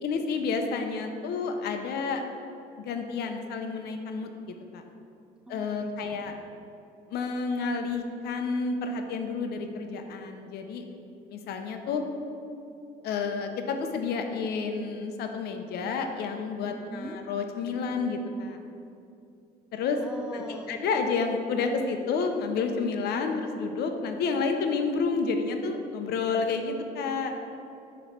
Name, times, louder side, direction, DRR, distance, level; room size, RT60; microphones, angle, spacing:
voice 1, 0.0-2.2 2.8-4.3 4.7-4.8 5.5-6.3 7.1-10.8 11.3-12.0 13.0-18.6 19.7-20.0 20.3-27.3, left 4 dB, 70° left, 5 dB, 0.7 m, -30 dB
voice 2, 5.5-5.9 6.2-6.4 16.7-17.2 20.0-20.8 27.4-27.5, right 1 dB, 5° right, 3 dB, 0.4 m, -42 dB
6.7 x 3.1 x 5.9 m, 2.7 s
cardioid pair, 110°, 17 cm